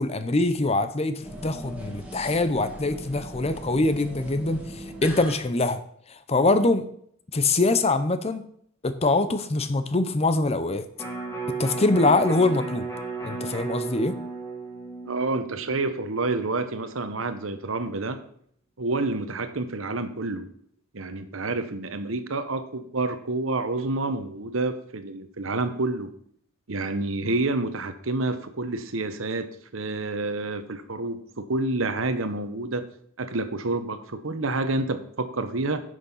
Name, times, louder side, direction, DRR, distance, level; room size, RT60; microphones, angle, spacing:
voice 1, 0.0-5.8 6.3-6.9 7.3-8.5 8.8-10.8 11.6-12.9 13.2-14.1, left 2 dB, 30° left, 11 dB, 0.7 m, -23 dB
sound 1, 1.2-5.3, left 1 dB, 5° right, 2.1 m, -39 dB
Electric guitar, 11.0-17.2 17.6-17.7, right 4 dB, 15° left, 2.9 m, -35 dB
voice 2, 15.0-18.2 18.8-20.5 20.9-26.1 26.7-32.8 33.2-35.8, right 2 dB, 75° right, 10 dB, 1.0 m, -28 dB
10.5 x 6.4 x 5.6 m, 0.64 s
head